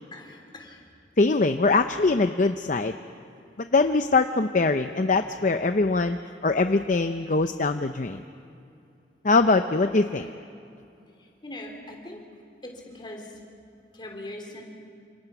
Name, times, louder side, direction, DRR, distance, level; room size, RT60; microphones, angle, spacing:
voice 1, 0.1-0.8 10.1-10.3 11.4-12.2 12.6-13.4 13.9-14.6, left 1 dB, 25° left, 1 dB, 3.5 m, -41 dB
voice 2, 1.2-2.9 3.6-8.2 9.2-10.3, left 3 dB, 45° left, 8 dB, 0.6 m, -22 dB
28.5 x 26.5 x 6.0 m, 2.5 s
head